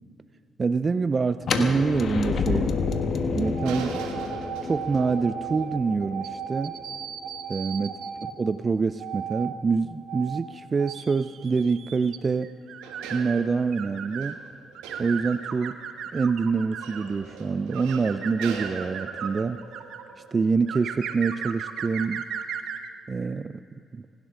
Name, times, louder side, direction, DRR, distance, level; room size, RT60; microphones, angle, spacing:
voice 1, 0.6-2.7 3.3-4.0 4.6-6.7 7.5-7.9 8.2-12.5 13.1-14.4 15.0-15.8 16.1-19.6 20.3-22.2 23.1-23.6 23.9-24.0, right 4 dB, 40° right, 12 dB, 0.4 m, -26 dB
sound 1, 1.4-7.3, left 4 dB, 60° left, 1.3 m, -29 dB
sound 2, 3.4-8.3 9.0-9.5 10.1-10.4 10.8-14.4 14.7-17.2 17.7-20.0 20.7-22.9, right 8 dB, 70° right, 1.0 m, -36 dB
sound 3, 3.6-7.6 12.3-12.4 12.8-21.9, right 5 dB, 85° right, 1.5 m, -43 dB
26.5 x 12.0 x 3.8 m, 2.6 s
hypercardioid pair, 50°, 0 cm